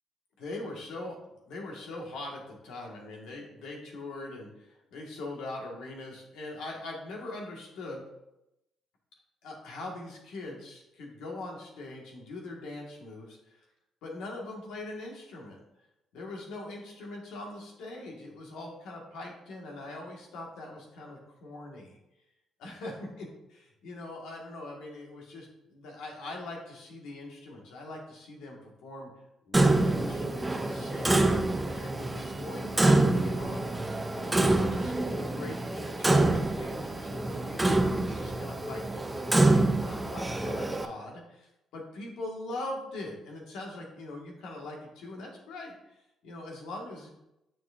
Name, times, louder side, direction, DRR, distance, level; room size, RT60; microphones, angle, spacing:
voice 1, 0.4-1.2 1.4-8.0 9.4-13.6 14.0-15.6 16.1-22.0 22.6-29.1 29.5-31.2 31.7-33.7 34.1-47.1, left 2 dB, 90° left, 0 dB, 1.6 m, -42 dB
Clock, 29.5-40.9, right 2 dB, 15° right, 0.6 m, -26 dB
7.2 x 6.2 x 2.5 m, 0.87 s
cardioid pair, 90°, 0 cm